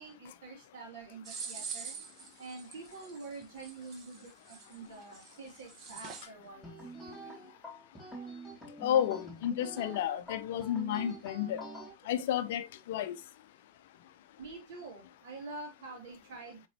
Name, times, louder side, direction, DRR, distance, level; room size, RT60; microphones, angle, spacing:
voice 1, 0.0-2.0 2.4-6.7 14.4-16.6, right 3 dB, 55° right, 3.0 m, -46 dB
sound 1, 1.3-6.3, right 6 dB, 35° right, 1.3 m, -45 dB
sound 2, 6.6-11.9, right 1 dB, ahead, 3.4 m, -46 dB
voice 2, 8.8-11.6 12.1-13.2, left 10 dB, 55° left, 0.6 m, -31 dB
7.8 x 4.0 x 3.0 m
figure-of-eight pair, 90°, 0 cm